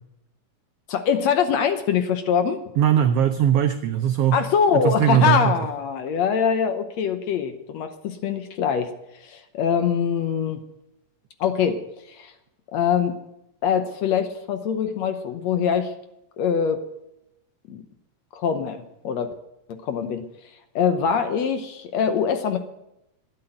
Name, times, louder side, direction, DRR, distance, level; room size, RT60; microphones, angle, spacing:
voice 1, 0.9-2.6 4.3-8.9 9.2-10.6 11.4-11.8 12.1-12.3 12.7-13.2 13.6-15.9 16.4-16.8 17.7-17.8 18.3-19.3 19.8-20.2 20.8-22.6, left 7 dB, 70° left, 9 dB, 2.0 m, -23 dB
voice 2, 2.8-4.4 4.7-5.6, right 9 dB, 80° right, 8 dB, 1.3 m, -20 dB
12.0 x 10.0 x 8.9 m, 0.85 s
omnidirectional pair, 3.5 m